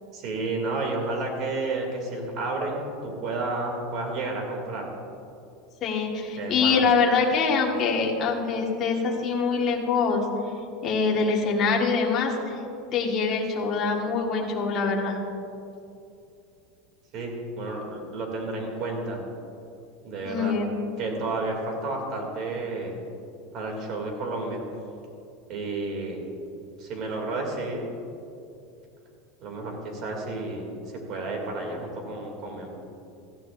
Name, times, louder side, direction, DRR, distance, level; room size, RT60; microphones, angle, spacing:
voice 1, 0.1-4.9 6.3-6.8 17.1-19.2 20.0-20.6 21.0-22.9 23.5-24.6 25.5-26.2 26.8-27.8 29.4-30.7 31.1-32.7, right 2 dB, 45° right, 1 dB, 2.6 m, -31 dB
voice 2, 5.8-10.2 10.8-12.3 12.9-15.2 20.3-20.7, left 5 dB, 35° left, -1 dB, 1.6 m, -24 dB
16.5 x 13.5 x 2.6 m, 2.6 s
supercardioid pair, 150°, 0 cm